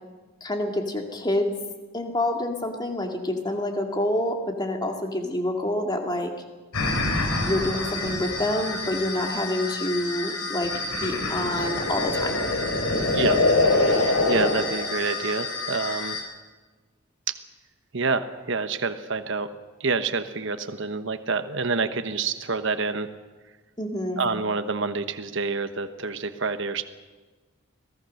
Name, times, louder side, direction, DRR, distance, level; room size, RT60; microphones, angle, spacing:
voice 1, 0.4-1.5 1.9-6.3 7.4-10.7 11.0-12.4 23.8-24.2, left 1 dB, 20° left, 3 dB, 2.3 m, -27 dB
sound 1, 6.7-16.2, left 2 dB, 85° left, 4.7 m, -25 dB
voice 2, 13.0-13.4 13.9-16.2 17.3-17.4 17.9-19.5 19.8-23.1 24.2-26.8, right 4 dB, 60° right, 9 dB, 1.2 m, -27 dB
26.0 x 18.0 x 6.5 m, 1.3 s
head